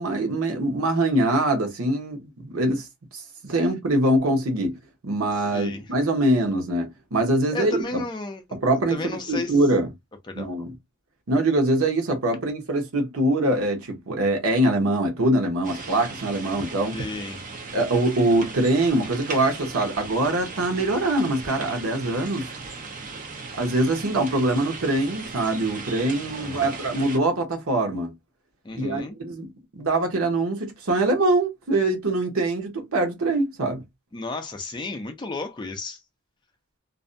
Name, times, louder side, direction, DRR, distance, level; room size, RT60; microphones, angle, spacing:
voice 1, 0.0-2.9 3.1-4.8 5.0-8.0 8.5-9.0 9.3-9.9 10.4-10.7 11.3-17.0 17.7-22.5 23.6-28.1 28.7-33.8, right 1 dB, 80° right, 0.8 m, -23 dB
voice 2, 5.4-5.8 7.5-8.6 8.9-9.6 10.2-10.5 16.9-17.4 26.4-26.8 28.6-29.2 34.1-36.0, left 2 dB, 20° left, 0.3 m, -33 dB
sound 1, 15.6-27.2, right 4 dB, 35° right, 0.5 m, -37 dB
2.5 x 2.1 x 2.5 m
head